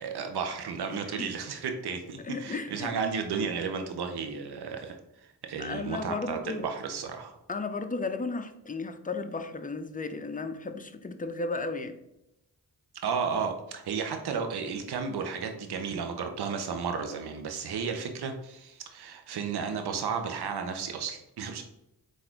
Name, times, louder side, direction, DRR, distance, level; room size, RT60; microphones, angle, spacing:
voice 1, 0.0-7.4 13.0-21.6, right 6 dB, 75° right, 5 dB, 0.6 m, -33 dB
voice 2, 0.9-1.3 2.2-2.9 5.6-6.7 7.5-11.9, left 3 dB, 20° left, 8 dB, 0.5 m, -34 dB
4.0 x 2.5 x 4.4 m, 0.87 s
cardioid pair, 50°, 40 cm